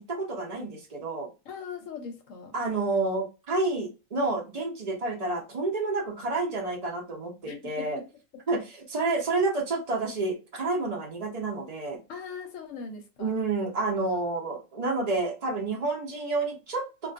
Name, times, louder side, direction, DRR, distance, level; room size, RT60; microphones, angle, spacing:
voice 1, 0.0-1.3 2.5-8.0 8.5-12.0 13.2-17.1, right 3 dB, 60° right, 0 dB, 0.4 m, -29 dB
voice 2, 1.5-2.5 7.4-8.1 12.1-13.5, left 5 dB, 75° left, 5 dB, 0.9 m, -40 dB
2.3 x 2.2 x 2.4 m, 0.30 s
omnidirectional pair, 1.4 m